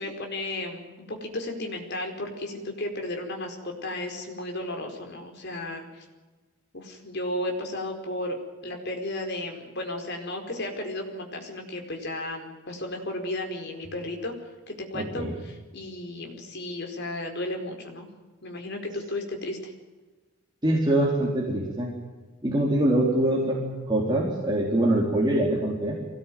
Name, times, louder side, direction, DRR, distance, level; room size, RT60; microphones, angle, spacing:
voice 1, 0.0-6.0 6.7-14.3 14.7-18.1 18.4-19.7, left 1 dB, 55° left, 3 dB, 4.8 m, -34 dB
voice 2, 14.9-15.3 20.6-21.9 22.4-26.0, right 1 dB, 20° right, -3 dB, 3.9 m, -24 dB
24.0 x 18.5 x 9.4 m, 1.3 s
head